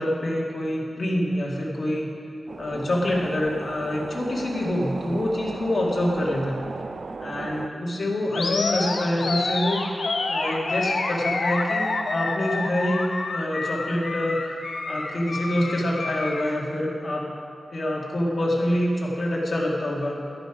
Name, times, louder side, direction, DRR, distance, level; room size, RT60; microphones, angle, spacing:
voice 1, 0.0-2.1 2.6-6.6 7.2-9.8 10.3-13.0 13.3-14.6 14.9-17.4 17.7-20.2, left 1 dB, 45° left, -3 dB, 2.2 m, -26 dB
sound 1, 2.5-7.7, right 4 dB, 50° right, 0.4 m, -36 dB
Animal, 8.3-16.5, left 3 dB, 60° left, 1.0 m, -28 dB
11.5 x 11.0 x 5.0 m, 2.5 s
wide cardioid pair, 130°, 0 cm